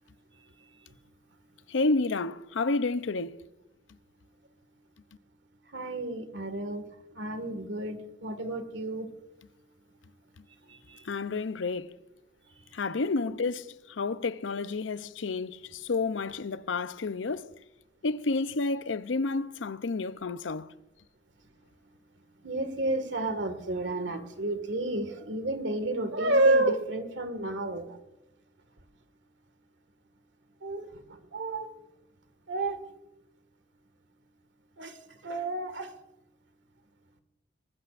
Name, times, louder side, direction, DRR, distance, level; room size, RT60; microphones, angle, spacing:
voice 1, 1.7-3.4 11.0-12.0 12.7-17.5 18.0-20.7, left 3 dB, 85° left, 0.6 m, -30 dB
voice 2, 5.7-6.9 7.2-9.1 10.7-11.0 13.2-13.4 22.4-28.0 30.6-30.9 31.3-31.7 32.5-32.8 34.8-34.9 35.2-35.9, right 2 dB, 75° right, 1.9 m, -30 dB
23.5 x 19.5 x 2.5 m
head